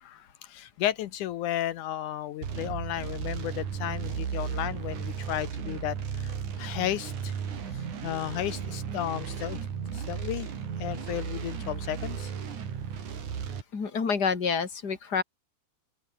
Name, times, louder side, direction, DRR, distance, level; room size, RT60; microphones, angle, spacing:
voice 1, 0.0-6.3 6.6-7.4 7.7-9.6 9.9-10.5 10.8-12.3, left 13 dB, 80° left, 2.5 m, -33 dB
sound 1, 2.4-13.6, right 7 dB, 75° right, 4.3 m, -35 dB
voice 2, 13.7-15.2, left 5 dB, 30° left, 3.4 m, -28 dB
open air
omnidirectional pair, 3.6 m